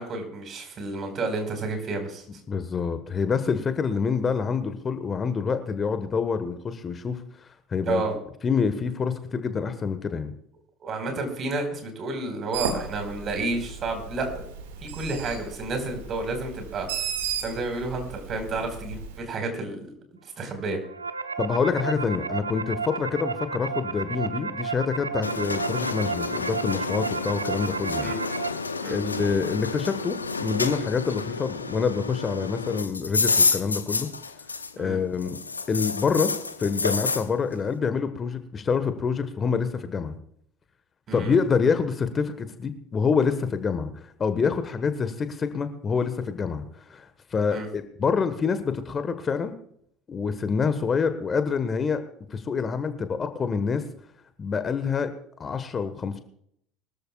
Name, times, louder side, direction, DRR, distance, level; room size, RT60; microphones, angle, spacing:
voice 1, 0.0-2.2 7.9-8.1 10.8-14.5 14.8-16.9 17.4-19.9 20.4-20.8 28.0-28.2 28.8-29.0 34.8-35.0 41.1-41.3 47.5-47.7, right 3 dB, 40° right, 5 dB, 4.7 m, -30 dB
voice 2, 2.5-7.2 7.7-8.0 8.4-10.3 21.4-28.1 28.9-34.1 34.8-35.4 35.7-36.3 36.6-40.1 41.1-46.6 46.9-49.5 50.1-52.0 52.3-53.8 54.4-55.1 55.4-56.2, left 5 dB, 30° left, 10 dB, 1.4 m, -26 dB
Bird, 12.5-19.2, right 6 dB, 70° right, 2.0 m, -35 dB
sound 1, 20.7-28.5, right 5 dB, 85° right, 0.7 m, -32 dB
sound 2, 25.2-34.9 35.2-37.3, left 4 dB, 85° left, 0.8 m, -29 dB
23.5 x 14.0 x 2.4 m, 0.67 s
figure-of-eight pair, 65°, 0 cm